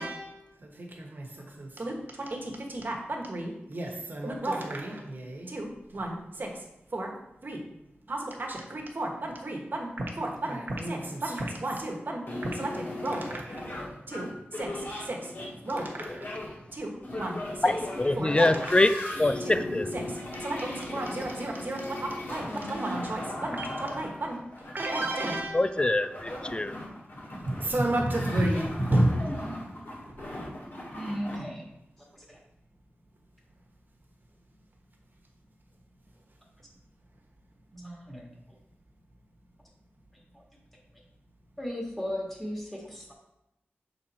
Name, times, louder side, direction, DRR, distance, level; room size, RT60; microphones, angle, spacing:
voice 1, 0.0-6.6 6.9-7.1 7.4-7.6 8.1-9.9 10.2-13.2 14.1-15.3 15.6-16.3 16.7-17.7 18.2-18.6 19.4-19.6 19.9-20.0 20.4-21.9 22.3-24.4 24.7-25.7 27.3-29.1, right 1 dB, 50° right, 1 dB, 1.3 m, -32 dB
sound 1, 12.3-31.4, left 1 dB, 60° left, 1.8 m, -38 dB
voice 2, 17.6-19.9 25.5-26.8, left 2 dB, 25° left, 11 dB, 0.3 m, -24 dB
voice 3, 30.9-31.6 32.1-32.4 37.7-38.3 41.6-43.1, equal, 5° left, -3 dB, 1.7 m, -36 dB
6.4 x 4.2 x 4.2 m, 0.88 s
wide cardioid pair, 90°, 4 cm